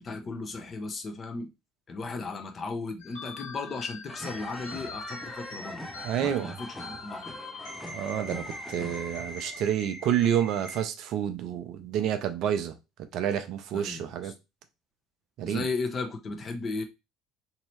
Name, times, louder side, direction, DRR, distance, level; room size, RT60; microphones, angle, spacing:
voice 1, 0.0-1.5 1.9-5.8 6.2-7.4 13.7-14.3 15.4-16.8, left 3 dB, 35° left, 0.8 m, -35 dB
sound 1, 3.0-10.8, left 2 dB, 70° left, 1.0 m, -42 dB
sound 2, 4.1-9.7, equal, 5° left, 0.6 m, -43 dB
voice 2, 6.0-6.5 7.9-12.7 13.1-14.3 15.4-15.7, right 9 dB, 55° right, 0.5 m, -29 dB
3.0 x 2.8 x 3.1 m
figure-of-eight pair, 65°, 0 cm